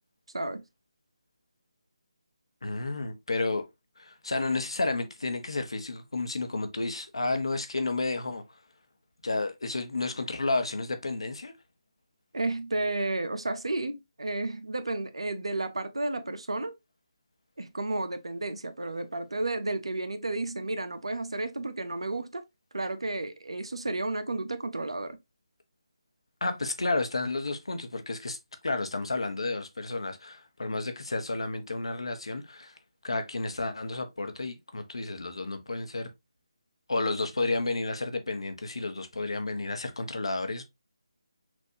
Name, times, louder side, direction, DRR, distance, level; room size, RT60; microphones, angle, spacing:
voice 1, 2.6-3.7 4.0-8.4 9.2-11.5 26.4-28.4 28.6-32.7 33.0-36.1 36.9-40.6, left 3 dB, 70° left, 1.0 m, -31 dB
voice 2, 12.3-16.8 17.6-22.4 22.7-25.2, right 2 dB, 75° right, 0.7 m, -32 dB
6.0 x 2.6 x 2.7 m
figure-of-eight pair, 155°, 3 cm